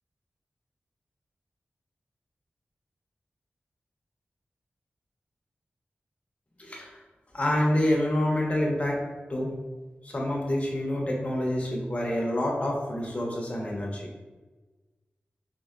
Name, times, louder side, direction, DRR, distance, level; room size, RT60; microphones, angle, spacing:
voice 1, 6.6-7.0 7.3-9.0 9.3-9.6 10.0-14.1, left 1 dB, 35° left, -2 dB, 0.9 m, -27 dB
4.4 x 3.6 x 2.4 m, 1.2 s
wide cardioid pair, 115°, 4 cm